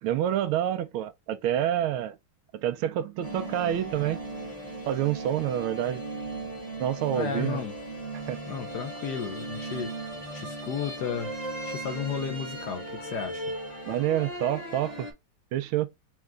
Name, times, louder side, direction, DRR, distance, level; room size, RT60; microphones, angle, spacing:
voice 1, 0.0-2.2 2.5-4.2 4.9-6.0 6.8-7.6 8.3-8.4 13.9-15.1 15.5-15.9, right 11 dB, 85° right, 1.4 m, -28 dB
sound 1, 3.2-15.1, right 2 dB, 85° left, 0.3 m, -37 dB
voice 2, 7.1-7.7 8.5-9.9 10.3-11.3 11.6-13.4, left 7 dB, 65° left, 1.1 m, -33 dB
4.4 x 2.4 x 3.6 m
omnidirectional pair, 2.2 m